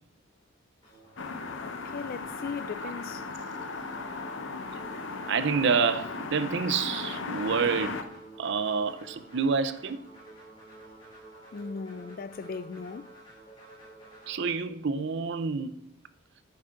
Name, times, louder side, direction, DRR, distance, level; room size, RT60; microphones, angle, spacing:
sound 1, 0.8-14.5, right 2 dB, 20° left, 4.0 m, -50 dB
sound 2, 1.2-8.0, left 3 dB, 60° left, 0.7 m, -37 dB
voice 1, 1.6-3.3 11.5-13.2, left 5 dB, 45° left, 0.3 m, -38 dB
voice 2, 5.3-8.1 8.4-10.0 14.3-15.7, right 5 dB, 55° right, 0.5 m, -28 dB
9.0 x 8.6 x 3.8 m
head